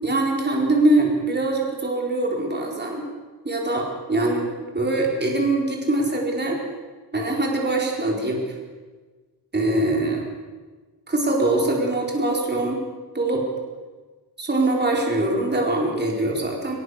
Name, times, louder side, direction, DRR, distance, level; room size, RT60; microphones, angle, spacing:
voice 1, 0.0-3.0 3.4-3.8 4.1-6.6 7.1-8.4 9.5-10.3 11.1-12.8 13.1-13.4 14.4-16.8, right 2 dB, 25° right, 0 dB, 4.5 m, -23 dB
22.0 x 20.0 x 6.5 m, 1.3 s
wide cardioid pair, 115°, 42 cm